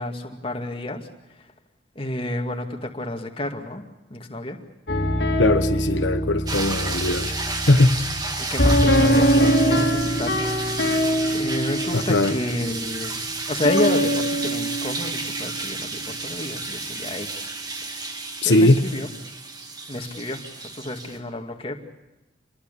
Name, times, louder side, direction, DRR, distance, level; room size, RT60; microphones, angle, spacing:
voice 1, 0.0-1.5 2.0-3.8 4.1-4.6 8.5-10.4 10.7-10.9 11.3-17.5 17.8-18.2 18.4-19.1 19.9-21.8, left 1 dB, 30° left, 4 dB, 2.3 m, -30 dB
sound 1, 4.9-15.7, equal, 60° left, 2.6 m, -23 dB
voice 2, 5.4-8.0 11.9-12.4 18.4-18.9, left 2 dB, 80° left, 7 dB, 1.2 m, -20 dB
sound 2, 6.5-21.2, right 3 dB, 20° right, 1.9 m, -32 dB
27.5 x 22.0 x 7.0 m, 0.97 s
head